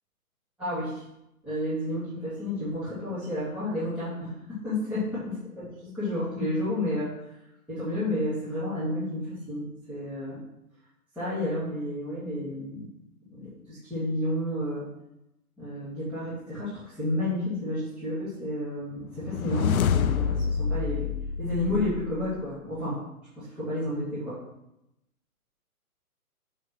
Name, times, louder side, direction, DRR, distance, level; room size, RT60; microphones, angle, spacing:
voice 1, 0.6-1.0 1.4-7.1 7.7-10.4 11.1-12.9 13.3-14.9 15.6-21.1 21.4-23.0 23.4-24.4, left 1 dB, 5° right, -15 dB, 1.9 m, -31 dB
sound 1, 19.2-22.4, left 7 dB, 70° left, 0.6 m, -27 dB
6.7 x 3.8 x 5.9 m, 0.85 s
hypercardioid pair, 155°, 44 cm